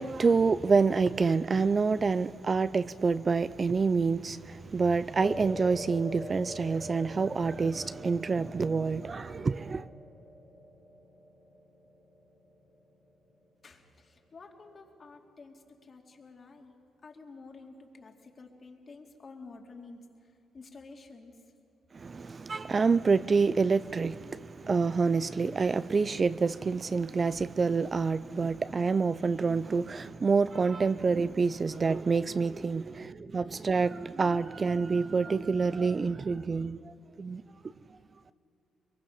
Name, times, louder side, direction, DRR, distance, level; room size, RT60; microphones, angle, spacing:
voice 1, 0.0-9.9 21.9-37.4, right 4 dB, 35° right, 0.4 m, -27 dB
sound 1, 5.1-13.6, equal, ahead, 2.3 m, -45 dB
voice 2, 13.6-16.7 17.0-21.4, left 3 dB, 40° left, 2.4 m, -50 dB
22.5 x 22.5 x 5.7 m
cardioid pair, 90°, 0 cm